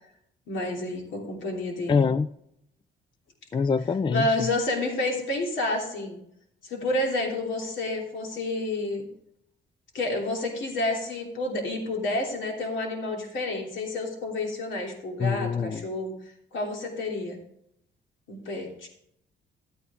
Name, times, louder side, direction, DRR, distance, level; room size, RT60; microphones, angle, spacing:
voice 1, 0.5-2.0 4.1-6.2 6.6-9.1 9.9-16.1 16.5-17.4 18.3-18.9, left 2 dB, 70° left, 1 dB, 3.2 m, -29 dB
voice 2, 1.9-2.3 3.5-4.5 15.2-15.8, left 5 dB, 25° left, 14 dB, 0.4 m, -25 dB
12.5 x 9.0 x 3.6 m, 0.74 s
cardioid pair, 90°, 20 cm